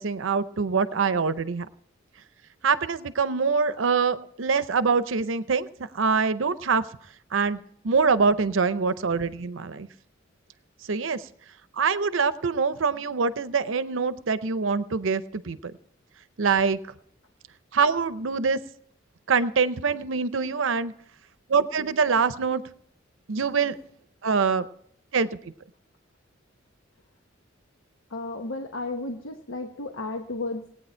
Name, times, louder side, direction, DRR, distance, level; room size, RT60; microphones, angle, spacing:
voice 1, 0.0-1.7 2.6-6.8 7.3-9.9 10.8-11.3 11.8-15.7 16.4-16.8 17.7-18.6 19.3-20.9 21.5-22.6 23.3-23.8 24.2-24.7 25.1-25.3, right 5 dB, 75° right, 14 dB, 0.7 m, -24 dB
voice 2, 28.1-30.7, left 2 dB, 75° left, 3 dB, 1.1 m, -33 dB
19.0 x 9.2 x 4.4 m, 0.68 s
head